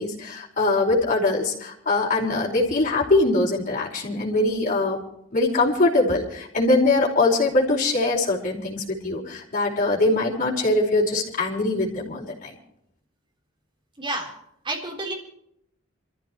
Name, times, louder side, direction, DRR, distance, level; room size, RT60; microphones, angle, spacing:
voice 1, 0.0-5.0 5.3-12.5, left 2 dB, 40° left, -3 dB, 5.1 m, -22 dB
voice 2, 14.0-14.3 14.6-15.1, right 2 dB, 25° right, -1 dB, 4.0 m, -29 dB
27.5 x 14.5 x 3.1 m, 0.76 s
head